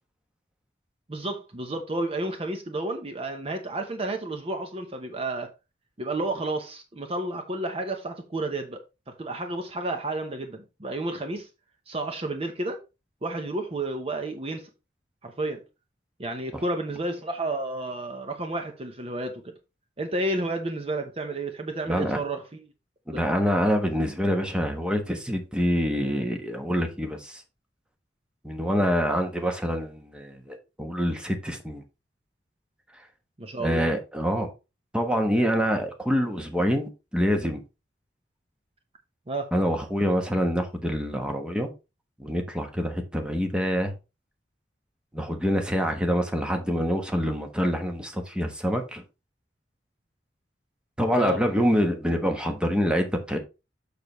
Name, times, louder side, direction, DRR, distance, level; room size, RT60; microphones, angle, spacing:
voice 1, 1.1-5.5 6.0-8.8 9.1-11.5 11.9-12.8 13.2-14.7 15.2-15.6 16.2-19.5 20.0-22.7 23.1-23.2 29.1-29.2 33.4-33.9 39.3-39.5 51.2-51.4, right 2 dB, 35° right, 0.8 m, -31 dB
voice 2, 21.9-22.2 23.1-27.4 28.4-31.8 33.6-34.5 34.9-37.6 39.5-41.7 42.2-43.9 45.1-49.0 51.0-53.4, equal, 5° right, 1.2 m, -26 dB
6.8 x 6.6 x 3.0 m
head